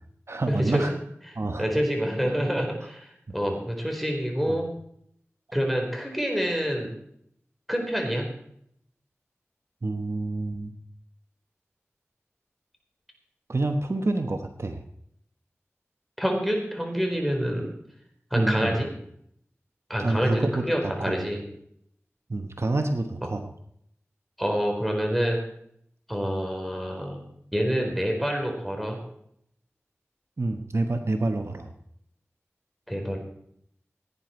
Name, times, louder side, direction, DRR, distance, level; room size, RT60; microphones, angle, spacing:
voice 1, 0.3-0.9 1.3-1.7 4.5-4.6 9.8-10.7 13.5-14.8 18.3-18.8 20.0-20.6 21.0-21.2 22.3-23.4 30.4-31.7, right 2 dB, 60° right, 6 dB, 1.2 m, -27 dB
voice 2, 1.6-4.7 5.5-6.9 7.7-8.3 16.2-17.7 18.3-18.9 19.9-21.4 24.4-25.4 26.1-27.3 27.5-29.0 32.9-33.2, equal, ahead, 1 dB, 4.2 m, -27 dB
17.0 x 9.7 x 4.5 m, 0.70 s
wide cardioid pair, 40°, 5 cm